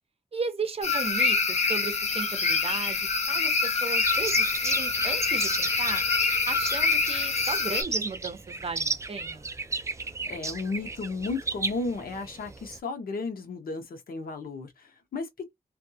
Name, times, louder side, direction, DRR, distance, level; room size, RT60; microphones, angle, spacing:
voice 1, 0.3-6.0 6.5-9.5, right 4 dB, 40° right, 0.7 m, -35 dB
sound 1, 0.8-7.8, left 4 dB, 50° left, 0.6 m, -26 dB
sound 2, 4.0-12.8, right 3 dB, 20° right, 0.3 m, -34 dB
voice 2, 10.3-15.5, left 3 dB, 85° left, 0.9 m, -34 dB
2.5 x 2.3 x 2.7 m
wide cardioid pair, 130°, 15 cm